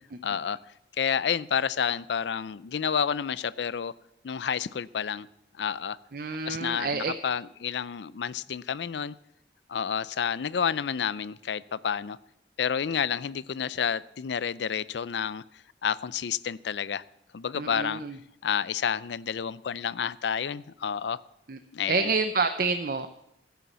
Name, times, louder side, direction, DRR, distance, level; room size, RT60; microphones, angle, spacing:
voice 1, 0.2-0.6 1.0-3.9 4.2-5.3 5.5-6.0 6.4-9.1 9.7-12.2 12.6-15.4 15.8-17.0 17.3-18.0 18.4-21.2 21.7-22.1, left 7 dB, 80° left, 18 dB, 0.4 m, -30 dB
voice 2, 6.1-7.1 17.5-18.2 21.5-21.6 21.9-23.1, right 4 dB, 55° right, 9 dB, 0.6 m, -28 dB
15.0 x 8.3 x 7.4 m, 0.82 s
head